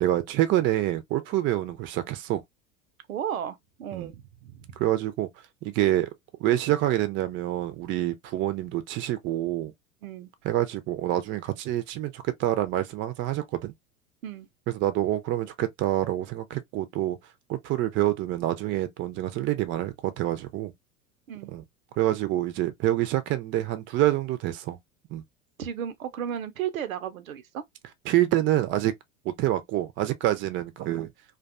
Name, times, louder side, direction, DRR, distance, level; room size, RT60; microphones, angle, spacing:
voice 1, 0.0-2.4 3.9-4.1 4.8-5.3 5.6-6.1 6.4-9.7 10.4-13.7 14.7-17.2 17.5-20.7 21.5-21.6 22.0-24.8 25.1-25.2 28.1-28.9 29.2-31.1, right 14 dB, 30° right, 0.5 m, -27 dB
voice 2, 3.1-4.7 10.0-10.3 14.2-14.5 21.3-21.5 25.6-27.6 30.5-30.6, right 9 dB, 80° right, 0.6 m, -34 dB
2.5 x 2.2 x 2.3 m
figure-of-eight pair, 85°, 41 cm